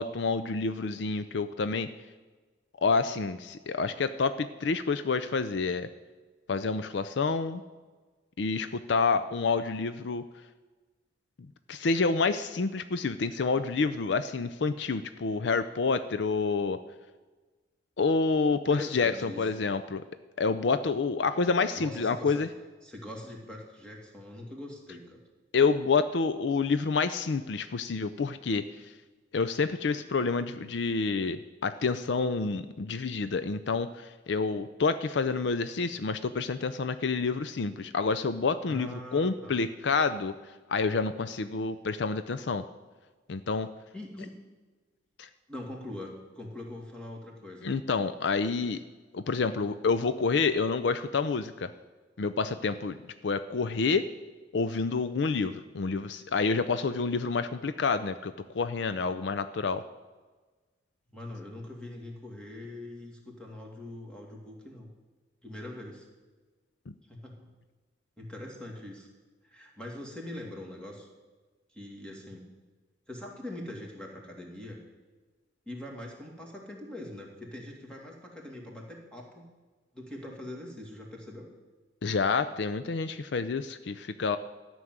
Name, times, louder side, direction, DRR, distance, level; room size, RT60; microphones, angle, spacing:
voice 1, 0.0-1.9 2.8-5.9 6.5-7.6 8.4-10.2 11.7-16.8 18.0-20.0 20.4-22.5 25.5-28.9 29.3-40.3 40.7-42.6 43.3-43.7 45.2-45.3 47.6-48.8 49.1-51.7 52.2-53.0 53.2-54.1 54.5-59.8 66.9-67.0 82.0-84.4, left 4 dB, 65° left, 11 dB, 0.5 m, -28 dB
voice 2, 18.7-19.5 21.7-22.4 22.8-25.2 38.6-39.6 43.9-44.3 45.5-47.7 61.1-64.9 65.4-66.1 67.1-67.5 68.2-69.1 69.4-71.1 71.7-72.5 73.1-74.8 75.7-79.4 79.9-81.5, left 1 dB, 5° left, -1 dB, 2.3 m, -42 dB
13.0 x 6.2 x 9.4 m, 1.3 s
head